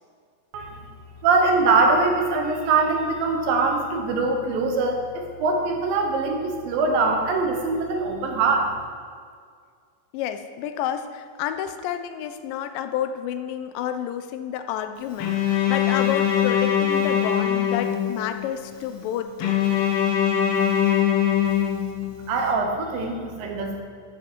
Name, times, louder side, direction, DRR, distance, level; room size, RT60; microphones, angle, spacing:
voice 1, 0.5-0.9 1.2-8.7 22.3-23.8, right 3 dB, 85° right, 3 dB, 2.8 m, -23 dB
voice 2, 10.1-19.3, left 10 dB, 90° left, 9 dB, 2.3 m, -30 dB
Bowed string instrument, 15.2-18.4 19.4-22.3, left 9 dB, 70° left, 1.4 m, -22 dB
13.0 x 5.8 x 4.5 m, 2.1 s
omnidirectional pair, 3.9 m